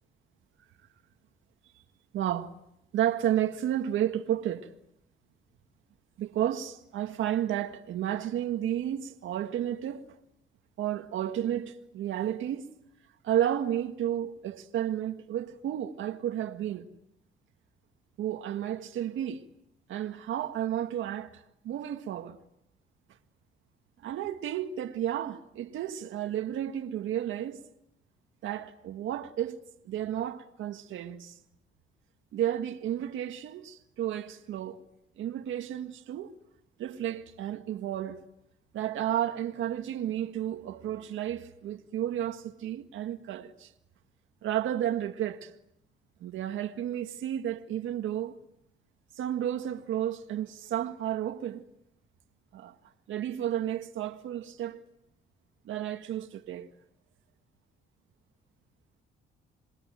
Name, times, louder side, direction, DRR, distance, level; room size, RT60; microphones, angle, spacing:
voice 1, 2.1-2.5 2.9-4.7 6.2-10.0 10.8-12.7 13.2-16.9 18.2-19.4 19.9-22.4 24.0-27.6 28.4-29.6 29.9-31.4 32.3-34.8 35.2-36.3 36.8-38.2 38.7-43.7 44.4-45.5 46.2-48.4 49.2-51.6 52.5-52.8 53.1-54.8 55.7-56.7, right 11 dB, 80° right, 1.8 m, -32 dB
27.5 x 23.0 x 9.2 m
cardioid pair, 90°, 20 cm